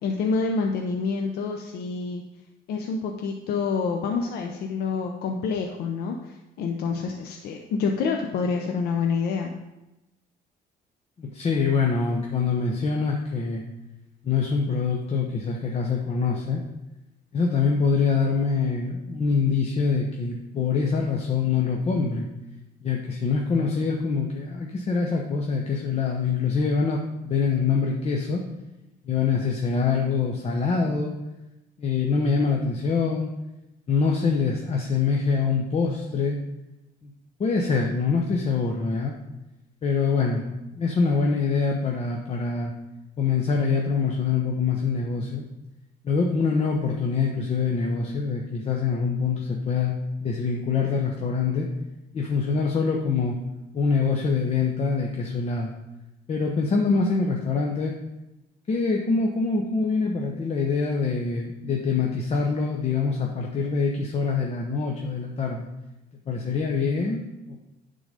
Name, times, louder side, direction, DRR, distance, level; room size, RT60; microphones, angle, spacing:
voice 1, 0.0-2.2 2.7-9.5, left 5 dB, 70° left, 3 dB, 0.7 m, -27 dB
voice 2, 11.2-13.6 14.2-16.6 17.3-22.3 22.8-28.4 29.0-31.1 31.8-33.3 33.9-36.4 37.0-37.1 37.4-39.1 39.8-42.7 43.2-45.5 46.0-51.7 52.1-53.4 53.7-55.7 56.3-58.0 58.7-65.7 66.3-67.6, left 5 dB, 40° left, 0 dB, 0.9 m, -24 dB
9.9 x 3.9 x 5.1 m, 0.98 s
cardioid pair, 110°, 17 cm